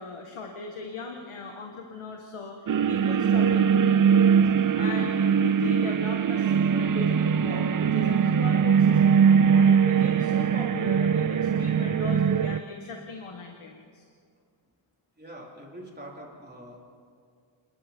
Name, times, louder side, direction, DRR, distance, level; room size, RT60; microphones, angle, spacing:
voice 1, 0.0-4.4 4.7-14.0, left 4 dB, 90° left, 2 dB, 1.8 m, -38 dB
sound 1, 2.7-12.6, right 7 dB, 40° right, 0.5 m, -21 dB
voice 2, 15.2-16.8, right 1 dB, 20° right, -2 dB, 4.2 m, -44 dB
29.5 x 20.0 x 4.6 m, 2.2 s
wide cardioid pair, 110°, 50 cm